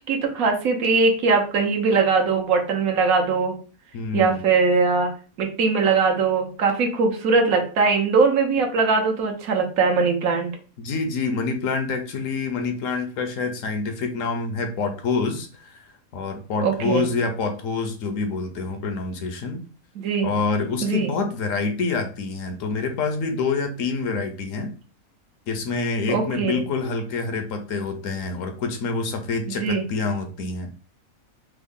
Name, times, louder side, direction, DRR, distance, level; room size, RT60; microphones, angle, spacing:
voice 1, 0.1-3.6 4.1-5.1 5.4-10.5 16.6-17.1 20.0-20.3 20.8-21.1 26.1-26.6 29.6-29.8, right 4 dB, 75° right, 2 dB, 1.2 m, -21 dB
voice 2, 3.9-4.4 10.8-19.6 20.2-24.7 25.5-30.7, left 4 dB, 70° left, 6 dB, 0.9 m, -27 dB
3.5 x 2.0 x 3.5 m, 0.38 s
omnidirectional pair, 1.5 m